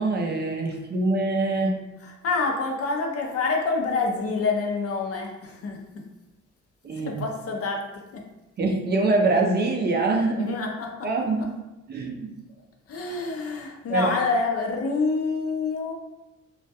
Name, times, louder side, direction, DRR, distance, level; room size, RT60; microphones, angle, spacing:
voice 1, 0.0-1.8 6.8-7.2 8.6-10.5 11.0-11.4 11.9-12.3 13.9-14.1, right 3 dB, 35° right, 1 dB, 0.4 m, -24 dB
voice 2, 2.0-6.0 7.1-7.8 8.1-8.2 10.3-10.9 12.9-15.9, left 4 dB, 50° left, 1 dB, 0.5 m, -27 dB
2.3 x 2.1 x 2.7 m, 1.0 s
cardioid pair, 90°, 30 cm